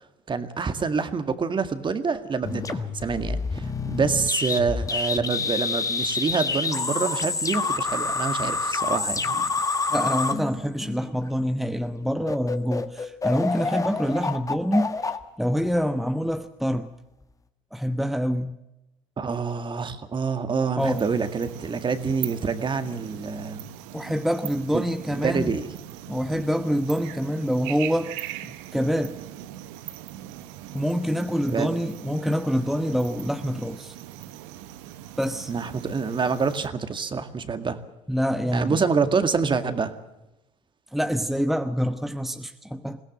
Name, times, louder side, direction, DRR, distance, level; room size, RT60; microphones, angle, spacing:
voice 1, 0.3-9.4 19.2-23.6 24.7-24.8 25.1-25.7 31.5-31.7 35.5-37.8 38.5-40.0, right 5 dB, 30° right, 2.0 m, -26 dB
sound 1, 2.4-11.3 11.8-12.0 12.3-16.2, left 4 dB, 20° left, 1.6 m, -28 dB
voice 2, 9.9-15.0 15.4-16.9 17.7-18.5 20.8-21.0 23.9-25.5 26.1-28.1 28.4-29.2 30.7-33.9 35.2-35.5 38.1-38.8 40.9-43.0, equal, ahead, 1.1 m, -26 dB
sound 2, 20.8-36.7, right 13 dB, 75° right, 1.2 m, -40 dB
21.5 x 17.5 x 7.5 m
hypercardioid pair, 70°, 16 cm